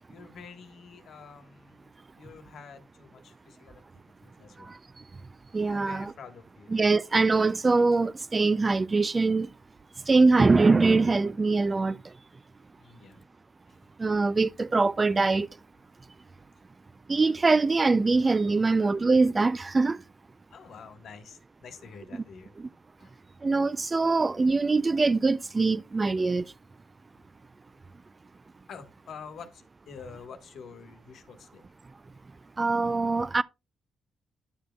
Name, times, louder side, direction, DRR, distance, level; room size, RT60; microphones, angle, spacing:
voice 1, 0.1-1.9 2.1-3.8 4.2-4.8 5.7-6.8 12.8-13.2 13.7-13.8 20.5-22.5 23.0-23.2 28.7-31.6, left 6 dB, 65° left, 1.3 m, -47 dB
voice 2, 5.5-6.1 6.7-9.5 10.1-12.0 14.0-15.5 17.1-20.0 22.6-22.7 23.4-26.4 32.6-33.4, right 3 dB, 25° right, 0.4 m, -23 dB
11.5 x 7.2 x 2.3 m
cardioid pair, 90°, 0 cm